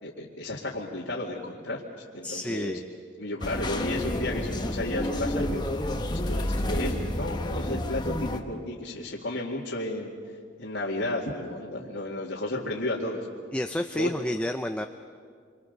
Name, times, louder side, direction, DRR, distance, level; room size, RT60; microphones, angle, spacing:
voice 1, 0.0-1.8 2.1-2.8 3.2-5.7 6.1-10.1 10.6-13.3 13.9-14.1, left 1 dB, 70° left, -4 dB, 2.2 m, -33 dB
voice 2, 2.2-2.8 13.5-14.9, left 1 dB, 5° left, 6 dB, 0.5 m, -29 dB
sound 1, 3.4-8.4, left 1 dB, 20° left, 1.2 m, -30 dB
27.5 x 24.5 x 6.8 m, 2.2 s
head